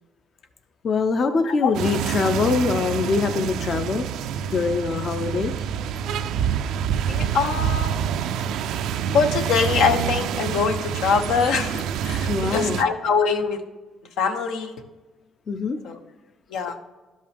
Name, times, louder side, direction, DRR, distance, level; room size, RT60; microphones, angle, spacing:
voice 1, 0.8-4.1 4.5-5.5 12.3-12.8 15.5-15.8, left 4 dB, 45° left, 7 dB, 0.5 m, -23 dB
sound 1, 1.7-12.8, right 8 dB, 80° right, 0.4 m, -27 dB
voice 2, 7.1-8.0 9.1-13.6 14.2-14.7 15.8-16.0 16.5-16.7, left 5 dB, 85° left, 6 dB, 0.9 m, -23 dB
12.0 x 5.4 x 3.4 m, 1.2 s
cardioid pair, 110°, 0 cm